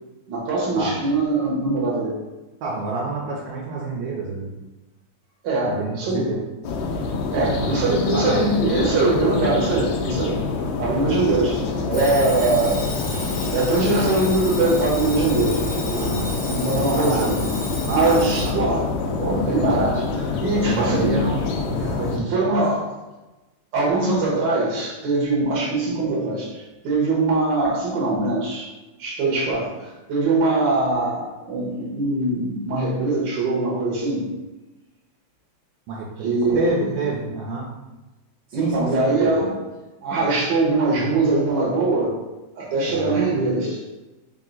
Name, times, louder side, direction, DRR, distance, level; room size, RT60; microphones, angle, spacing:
voice 1, 0.3-2.2 5.4-6.3 7.3-10.4 10.8-12.9 13.5-16.2 16.5-17.4 17.8-18.9 19.2-21.2 22.3-22.8 23.7-28.7 29.0-34.3 36.2-36.9 38.5-39.6 40.0-42.2 42.5-43.8, right 2 dB, 50° right, -5 dB, 1.6 m, -22 dB
voice 2, 2.6-4.5 5.7-6.4 7.3-8.4 15.9-16.2 16.9-17.4 17.8-18.5 20.5-22.7 35.9-37.7 38.5-38.9 39.2-39.3 42.9-43.2, right 3 dB, 80° right, -3 dB, 1.8 m, -28 dB
sound 1, 6.6-22.2, left 3 dB, 75° left, 1.7 m, -26 dB
Alarm, 11.9-18.6, left 2 dB, 50° left, 0.8 m, -33 dB
4.6 x 2.8 x 3.9 m, 1.1 s
omnidirectional pair, 3.4 m